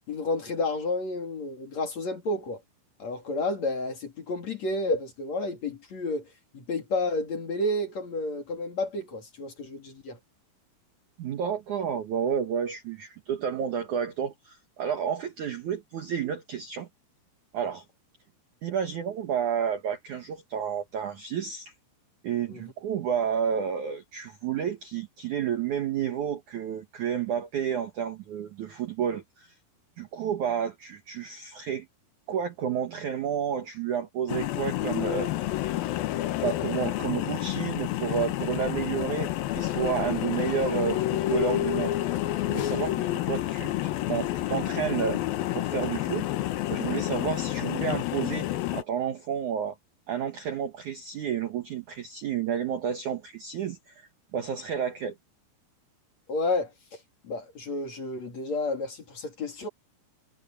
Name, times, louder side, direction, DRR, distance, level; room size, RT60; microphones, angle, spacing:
voice 1, 0.1-2.6 3.0-6.2 6.5-10.2 22.5-22.6 56.3-56.7 57.2-59.7, left 2 dB, 40° left, 3.4 m, -30 dB
voice 2, 11.2-16.9 17.5-17.8 18.6-21.7 22.2-29.5 30.0-31.9 32.3-35.3 35.6-35.7 36.4-42.0 42.5-45.2 45.5-49.8 50.1-55.2, right 8 dB, 80° right, 1.7 m, -31 dB
sound 1, 34.3-48.8, left 14 dB, 80° left, 2.1 m, -29 dB
omnidirectional pair, 5.8 m